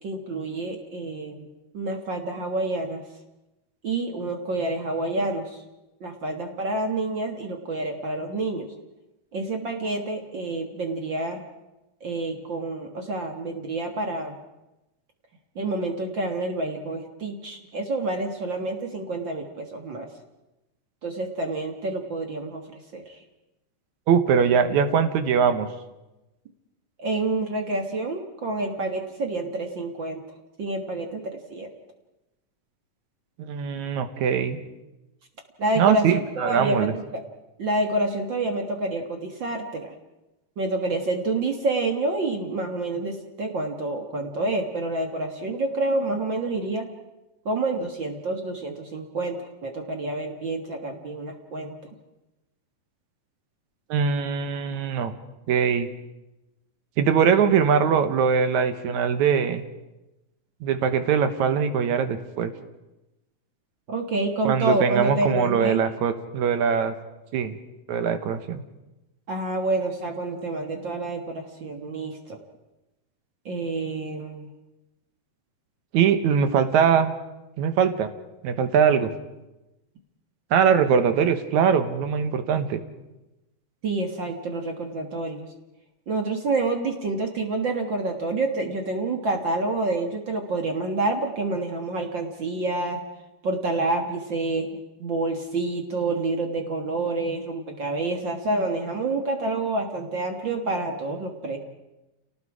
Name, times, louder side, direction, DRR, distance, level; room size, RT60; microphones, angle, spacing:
voice 1, 0.0-1.5 1.7-3.0 3.8-5.6 6.0-8.7 9.3-11.4 12.0-14.3 15.5-20.1 21.0-23.2 27.0-30.2 30.6-31.7 35.6-36.1 36.4-37.2 37.6-39.9 40.6-46.9 47.4-51.8 63.9-65.8 69.3-72.4 73.4-74.5 83.8-85.5 86.1-93.0 93.4-101.6, right 2 dB, 45° right, 4 dB, 1.8 m, -28 dB
voice 2, 24.1-25.7 33.4-34.6 35.8-36.9 53.9-55.1 55.5-55.9 57.0-59.6 60.6-62.5 64.4-67.0 67.3-67.6 67.9-68.6 75.9-77.1 77.6-78.1 78.4-79.1 80.5-82.8, right 7 dB, 70° right, 9 dB, 2.4 m, -22 dB
29.5 x 18.5 x 4.9 m, 0.98 s
omnidirectional pair, 3.7 m